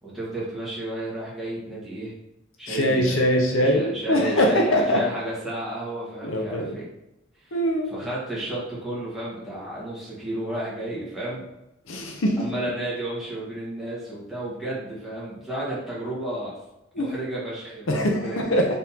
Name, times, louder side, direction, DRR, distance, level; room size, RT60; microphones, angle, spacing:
voice 1, 0.0-2.1 2.6-6.8 7.9-11.4 12.4-16.6 17.0-18.6, right 1 dB, ahead, -8 dB, 1.4 m, -32 dB
voice 2, 2.7-5.0 6.2-6.8 7.5-7.9 11.9-12.5 16.9-17.1 17.9-18.8, equal, 90° left, 1 dB, 0.7 m, -22 dB
4.0 x 3.7 x 2.8 m, 0.92 s
head